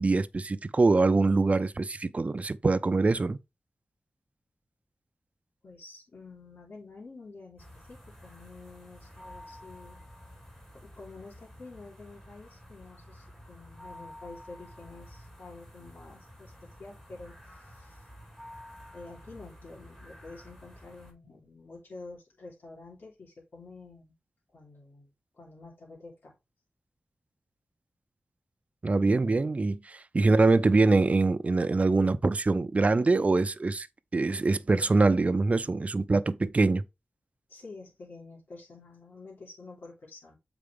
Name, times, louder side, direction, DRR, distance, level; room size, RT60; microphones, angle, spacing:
voice 1, 0.0-3.4 28.8-33.9 34.1-36.8, right 3 dB, 40° right, 0.6 m, -24 dB
voice 2, 5.6-10.0 10.7-18.1 18.9-24.1 24.5-25.1 25.4-26.3 30.2-30.4 37.5-40.4, left 3 dB, 70° left, 3.1 m, -49 dB
sound 1, 7.6-21.1, equal, 10° left, 4.2 m, -50 dB
7.7 x 5.0 x 3.4 m
wide cardioid pair, 90°, 4 cm